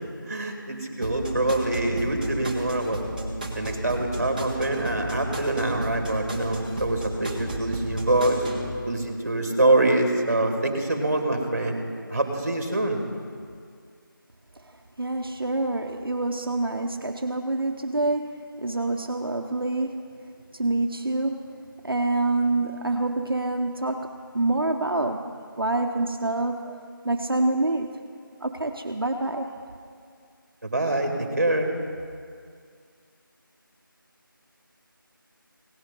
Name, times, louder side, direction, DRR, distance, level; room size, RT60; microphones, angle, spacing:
voice 1, 0.3-3.0 3.5-8.5 8.9-11.8 12.1-13.0 30.6-31.7, right 2 dB, 40° right, 4 dB, 1.7 m, -25 dB
sound 1, 1.0-8.7, right 1 dB, 20° right, 1.0 m, -33 dB
voice 2, 15.0-20.2 20.5-26.8 27.0-28.0 28.4-29.5, right 2 dB, 80° right, 3 dB, 0.8 m, -27 dB
17.0 x 8.2 x 5.2 m, 2.2 s
figure-of-eight pair, 175°, 12 cm